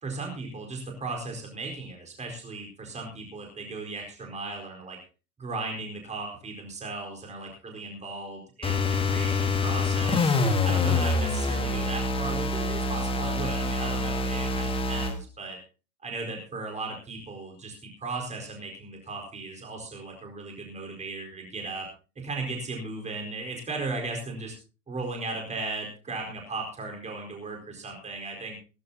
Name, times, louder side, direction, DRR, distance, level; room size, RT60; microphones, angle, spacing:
voice 1, 0.0-5.0 5.4-10.3 10.6-15.6 16.0-21.9 22.2-24.6 24.9-28.6, right 3 dB, 15° right, 2 dB, 4.4 m, -36 dB
sound 1, 8.6-15.2, left 3 dB, 10° left, 1.8 m, -26 dB
17.5 x 15.5 x 2.9 m, 0.33 s
figure-of-eight pair, 90°, 44 cm